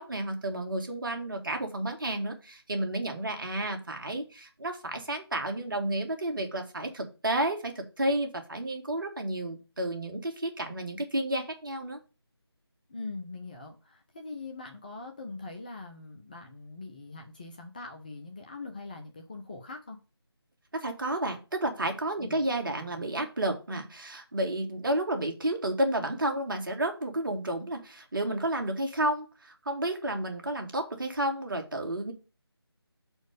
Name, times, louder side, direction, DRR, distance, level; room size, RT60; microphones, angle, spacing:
voice 1, 0.0-12.0 20.7-32.1, right 1 dB, 50° right, 4 dB, 2.2 m, -31 dB
voice 2, 12.9-20.0 22.2-22.4, left 3 dB, 20° left, 2 dB, 0.8 m, -42 dB
6.3 x 4.5 x 6.6 m, 0.32 s
figure-of-eight pair, 165°, 14 cm